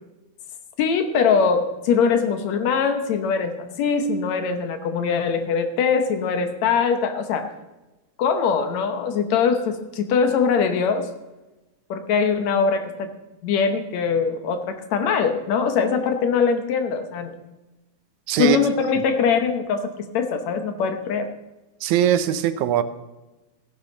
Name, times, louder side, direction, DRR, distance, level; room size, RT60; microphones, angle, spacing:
voice 1, 0.8-7.5 8.2-11.1 11.9-13.1 13.4-17.4 18.4-21.3, left 6 dB, 70° left, 8 dB, 2.2 m, -22 dB
voice 2, 21.8-22.8, right 10 dB, 80° right, 12 dB, 2.0 m, -20 dB
15.5 x 11.0 x 3.9 m, 1.0 s
omnidirectional pair, 3.4 m